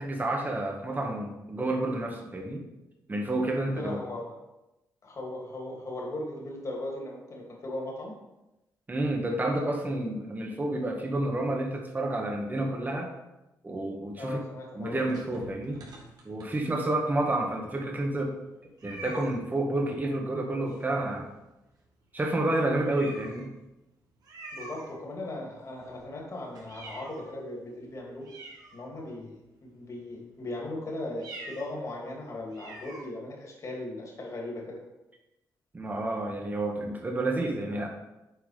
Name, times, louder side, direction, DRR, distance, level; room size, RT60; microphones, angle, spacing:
voice 1, 0.0-2.6 3.1-4.0 8.9-13.1 13.6-14.4 14.8-15.8 16.2-18.4 18.8-21.3 22.1-23.5 35.7-37.9, right 1 dB, 25° right, 1 dB, 1.7 m, -30 dB
voice 2, 3.7-4.4 5.0-8.1 14.2-15.0 24.5-28.3 28.7-34.8, left 2 dB, 50° left, -1 dB, 2.8 m, -38 dB
sound 1, 14.8-16.9 17.5-17.6 17.9-18.0 18.8-19.4 20.7-21.2 21.5-21.7 22.2-22.3 22.8-23.5 24.2-25.3 25.7-27.4 27.8-27.9 28.2-29.2 29.8-30.1 31.1-31.7 32.1-32.2 32.5-33.1, right 2 dB, 70° right, 2.1 m, -46 dB
8.1 x 4.7 x 5.0 m, 0.96 s
cardioid pair, 80°, 7 cm